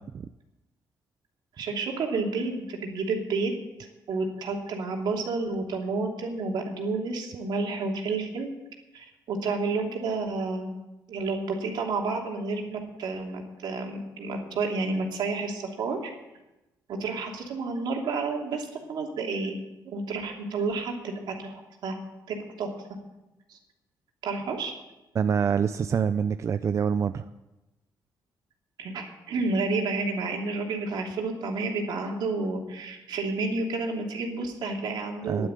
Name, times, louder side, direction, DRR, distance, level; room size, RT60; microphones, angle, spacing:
voice 1, 1.6-3.5 4.1-8.5 8.9-10.7 11.1-16.1 16.9-19.5 19.8-22.0 22.3-22.8 23.5-23.6 24.2-24.7 28.8-35.5, right 3 dB, 75° right, 1 dB, 2.8 m, -30 dB
voice 2, 25.1-27.2 35.3-35.5, right 7 dB, 40° right, 11 dB, 0.4 m, -26 dB
11.0 x 10.5 x 9.0 m, 1.0 s
cardioid pair, 140°, 8 cm